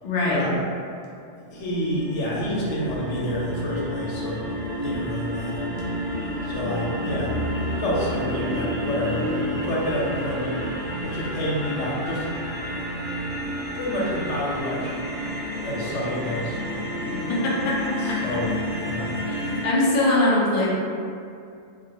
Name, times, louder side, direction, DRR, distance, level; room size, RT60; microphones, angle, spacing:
voice 1, 0.0-0.4 17.1-18.4 19.3-20.7, left 2 dB, 55° left, -5 dB, 0.4 m, -23 dB
voice 2, 1.5-4.4 4.8-5.7 6.4-7.3 7.8-10.5 11.0-12.3 13.7-14.9 15.6-16.6 18.0-18.5 18.8-19.2, equal, 85° left, -5 dB, 0.9 m, -28 dB
sound 1, 1.5-19.6, equal, 35° right, 0.6 m, -30 dB
2.3 x 2.0 x 2.8 m, 2.4 s
omnidirectional pair, 1.2 m